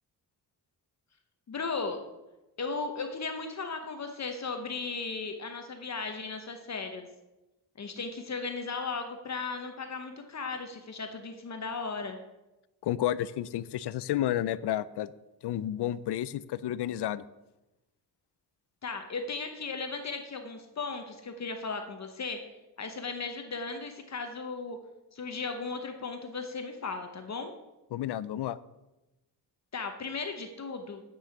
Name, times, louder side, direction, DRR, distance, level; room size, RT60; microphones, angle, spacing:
voice 1, 1.5-2.0 2.6-7.1 7.8-12.2 18.8-22.4 22.8-24.8 25.1-27.5 29.7-31.0, left 4 dB, 40° left, 6 dB, 0.9 m, -36 dB
voice 2, 12.8-15.1 15.4-17.2 27.9-28.6, left 12 dB, 80° left, 17 dB, 0.5 m, -31 dB
9.2 x 5.6 x 7.1 m, 1.0 s
wide cardioid pair, 165°, 40 cm